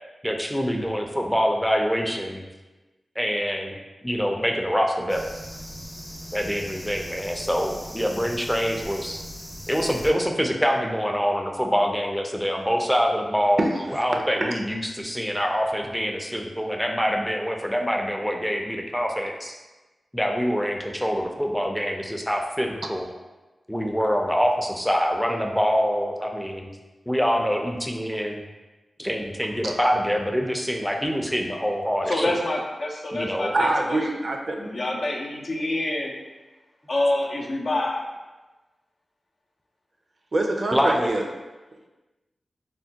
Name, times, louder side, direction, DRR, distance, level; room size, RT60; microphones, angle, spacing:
voice 1, 0.2-2.4 3.2-3.8 4.0-5.3 6.3-9.2 9.7-13.7 13.9-19.5 20.1-23.1 23.7-26.7 27.1-28.4 29.0-32.4 33.1-33.5 40.7-41.1, equal, 5° left, 2 dB, 0.4 m, -25 dB
sound 1, 5.1-10.1, equal, 20° left, 0.8 m, -39 dB
voice 2, 13.6-14.0 14.4-14.5 29.6-29.7 33.5-34.6 40.3-41.2, right 2 dB, 60° right, 2 dB, 0.4 m, -25 dB
voice 3, 32.1-34.0 34.6-36.1 36.9-38.0, left 1 dB, 65° left, -1 dB, 0.5 m, -26 dB
3.3 x 2.2 x 2.7 m, 1.2 s
cardioid pair, 50°, 0 cm